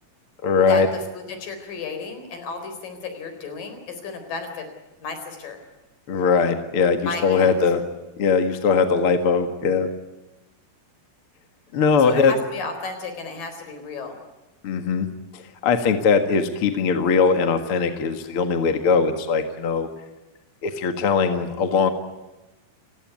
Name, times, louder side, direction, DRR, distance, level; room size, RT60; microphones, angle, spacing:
voice 1, 0.4-0.9 6.1-7.8 8.2-9.9 11.7-12.3 14.6-15.1 15.3-19.9 20.6-21.9, left 5 dB, 45° left, 7 dB, 2.2 m, -20 dB
voice 2, 1.1-4.7 5.0-5.6 7.0-7.5 12.0-14.2, left 4 dB, 70° left, 7 dB, 5.8 m, -33 dB
30.0 x 16.5 x 9.4 m, 1.1 s
omnidirectional pair, 4.1 m